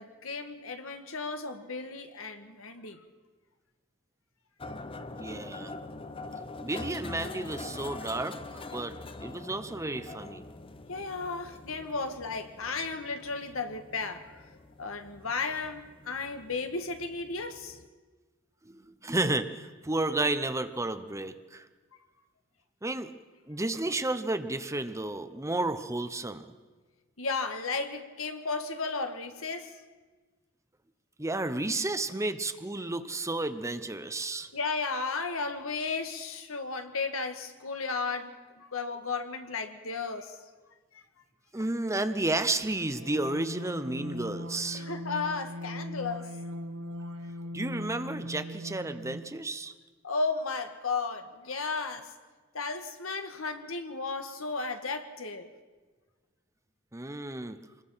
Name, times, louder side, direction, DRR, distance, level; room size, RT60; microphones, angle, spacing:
voice 1, 0.0-3.0 10.9-14.5 14.8-17.8 27.2-29.8 34.5-40.4 40.9-41.0 44.7-46.3 50.0-52.1 52.5-55.5, left 4 dB, 75° left, 7 dB, 1.7 m, -34 dB
sound 1, 4.6-17.9, left 2 dB, 25° left, 0.7 m, -44 dB
voice 2, 5.1-5.7 6.6-10.4 18.6-21.7 22.8-23.1 23.5-26.5 31.2-34.5 41.5-44.9 47.5-49.7 56.9-57.6, right 2 dB, 15° right, 10 dB, 0.8 m, -32 dB
sound 2, 42.5-49.4, left 1 dB, 70° right, 1.1 m, -40 dB
26.0 x 21.0 x 5.7 m, 1.3 s
head